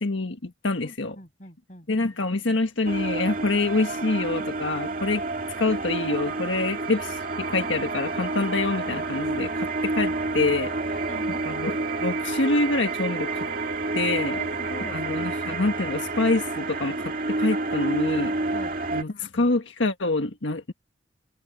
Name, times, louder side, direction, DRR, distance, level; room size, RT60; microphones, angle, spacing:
voice 1, 0.0-1.1 1.9-5.2 5.6-11.1 11.4-11.7 12.0-13.5 13.9-14.4 14.9-18.3 18.9-20.7, left 2 dB, 90° left, 1.5 m, -26 dB
voice 2, 0.8-1.9 11.1-11.4 14.2-15.0 18.5-18.8, left 1 dB, 40° left, 7.8 m, -41 dB
sound 1, 2.8-19.0, right 3 dB, 50° right, 2.1 m, -29 dB
head